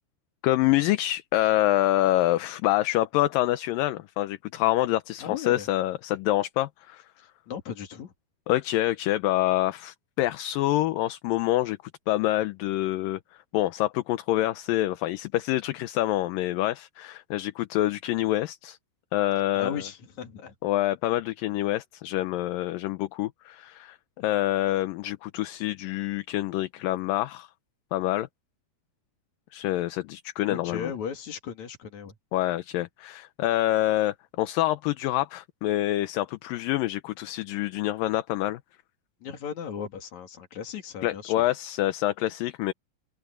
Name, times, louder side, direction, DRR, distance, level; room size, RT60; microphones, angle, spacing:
voice 1, 0.4-7.0 8.5-11.8 12.1-13.2 13.5-18.8 19.1-19.8 20.6-27.5 27.9-28.3 29.5-30.9 32.3-38.6 41.0-42.7, left 15 dB, 75° left, 2.4 m, -26 dB
voice 2, 5.2-5.7 7.5-8.1 19.5-20.5 30.4-32.2 39.2-41.5, left 7 dB, 55° left, 3.4 m, -36 dB
open air
omnidirectional pair, 4.2 m